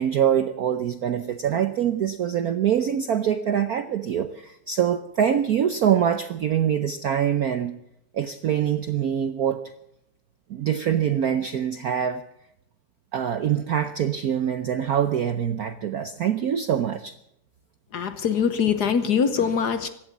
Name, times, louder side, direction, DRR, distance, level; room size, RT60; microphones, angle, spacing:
voice 1, 0.0-7.7 8.1-9.7 10.5-12.2 13.1-17.1, right 9 dB, 70° right, 10 dB, 0.9 m, -24 dB
voice 2, 17.9-19.9, left 7 dB, 55° left, 11 dB, 1.3 m, -23 dB
16.0 x 12.0 x 7.2 m, 0.78 s
omnidirectional pair, 2.4 m